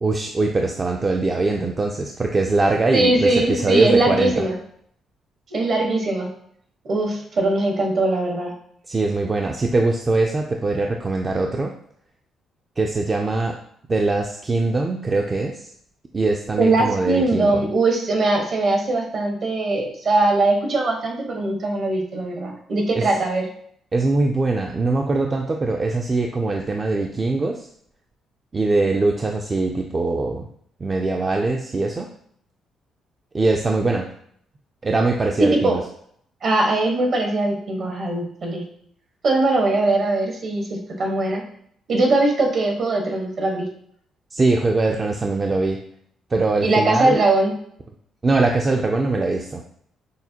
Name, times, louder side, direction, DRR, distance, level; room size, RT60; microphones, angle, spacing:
voice 1, 0.0-4.5 8.9-11.7 12.8-13.6 13.9-15.7 16.1-17.6 23.0-23.1 23.9-27.7 28.5-30.5 30.8-32.1 33.3-34.1 34.8-35.8 44.3-45.8 46.3-47.2 48.2-49.6, right 3 dB, 30° right, 2 dB, 0.4 m, -22 dB
voice 2, 2.9-4.5 5.5-6.3 6.8-8.5 16.6-23.5 35.4-35.8 36.4-38.6 39.2-41.4 41.9-43.7 46.6-47.5, right 2 dB, 55° right, 1 dB, 1.2 m, -21 dB
6.3 x 2.2 x 2.8 m, 0.65 s
cardioid pair, 90°, 0 cm